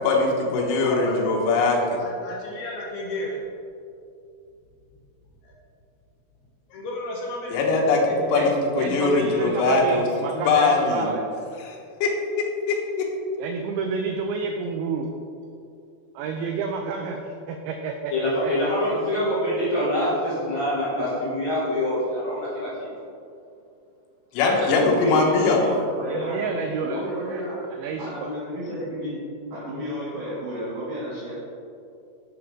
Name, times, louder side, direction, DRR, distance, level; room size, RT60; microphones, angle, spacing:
voice 1, 0.0-2.0 7.5-10.0 10.3-11.1 12.0-13.1 24.3-25.6, left 3 dB, 85° left, -1 dB, 3.9 m, -21 dB
voice 2, 0.8-1.4 1.7-3.4 6.7-7.5 8.1-8.2, left 1 dB, 70° left, -3 dB, 2.4 m, -33 dB
voice 3, 8.2-11.3 13.4-15.1 16.1-19.0 21.0-21.1 25.4-25.6 26.1-27.4 27.7-28.3, right 5 dB, 85° right, 3 dB, 2.5 m, -30 dB
voice 4, 18.1-22.9 24.4-25.1, left 1 dB, 55° left, -9 dB, 2.1 m, -25 dB
voice 5, 25.1-27.6 28.0-29.2 29.5-31.3, equal, 55° right, -9 dB, 2.9 m, -32 dB
10.5 x 7.7 x 3.6 m, 2.6 s
omnidirectional pair, 5.8 m